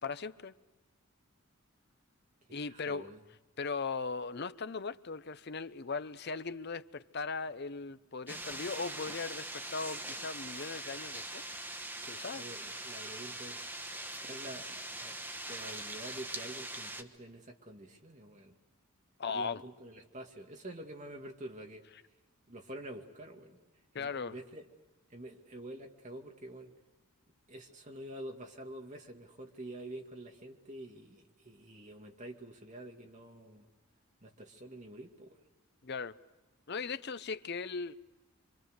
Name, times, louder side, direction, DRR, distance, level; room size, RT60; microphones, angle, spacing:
voice 1, 0.0-0.5 2.5-3.1 3.6-11.4 12.1-12.5 15.5-15.6 19.2-19.6 23.9-24.4 35.8-36.2 36.7-38.0, left 4 dB, 50° left, 0.7 m, -38 dB
voice 2, 2.7-3.2 12.3-13.6 14.3-15.2 15.5-18.5 19.3-21.8 22.5-23.6 24.0-24.6 25.1-26.7 27.5-33.7 34.2-35.4, right 1 dB, 35° right, 2.4 m, -47 dB
sound 1, 8.3-17.0, right 1 dB, 10° right, 1.2 m, -42 dB
26.5 x 25.5 x 6.6 m
head